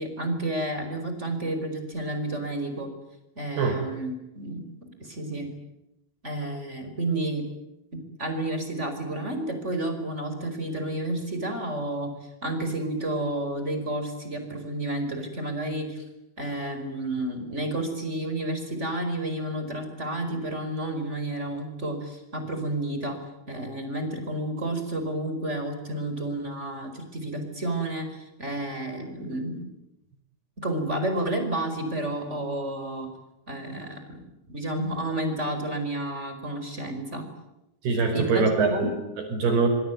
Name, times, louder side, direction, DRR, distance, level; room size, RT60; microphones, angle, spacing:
voice 1, 0.0-2.9 3.3-5.5 6.2-7.4 7.9-16.0 16.4-23.2 23.5-29.6 30.6-33.1 33.5-37.3 38.1-38.9, right 1 dB, 15° right, 6 dB, 4.6 m, -31 dB
voice 2, 37.8-39.7, right 4 dB, 60° right, 3 dB, 7.0 m, -24 dB
26.0 x 24.5 x 9.3 m, 0.90 s
omnidirectional pair, 5.2 m